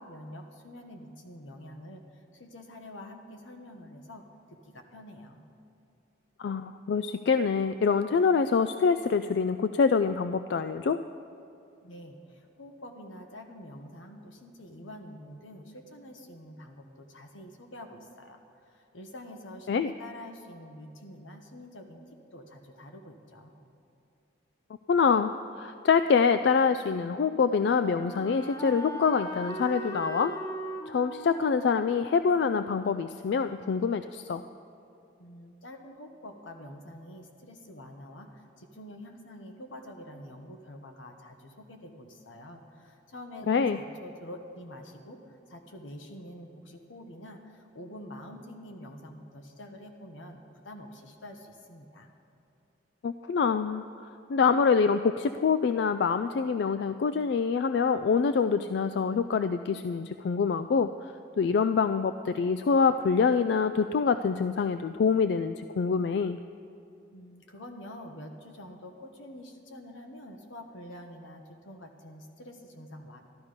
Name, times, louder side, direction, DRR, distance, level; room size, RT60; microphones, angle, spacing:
voice 1, 0.0-2.0 2.3-4.2 4.5-5.4 11.8-18.4 18.7-22.0 22.3-23.5 35.2-52.1 67.1-73.2, left 1 dB, 85° left, 4 dB, 1.3 m, -46 dB
voice 2, 6.4-11.0 19.7-19.9 24.9-30.3 30.9-34.4 43.5-43.8 53.0-53.8 54.3-60.9 61.4-66.4, left 5 dB, 60° left, 11 dB, 0.3 m, -25 dB
Wind instrument woodwind instrument, 26.8-33.7, right 1 dB, 15° left, 0.6 m, -41 dB
13.0 x 12.5 x 5.1 m, 2.7 s
head